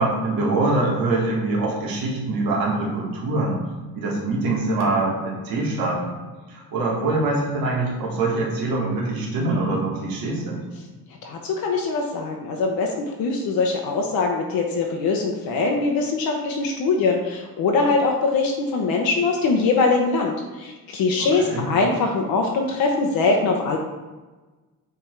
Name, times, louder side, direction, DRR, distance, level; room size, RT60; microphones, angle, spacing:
voice 1, 0.0-3.6 3.9-6.1 6.5-10.6 21.2-21.7, right 2 dB, 75° right, -4 dB, 2.1 m, -24 dB
voice 2, 11.2-23.8, left 3 dB, 75° left, 1 dB, 1.0 m, -22 dB
7.6 x 3.5 x 4.6 m, 1.2 s
cardioid pair, 160°, 36 cm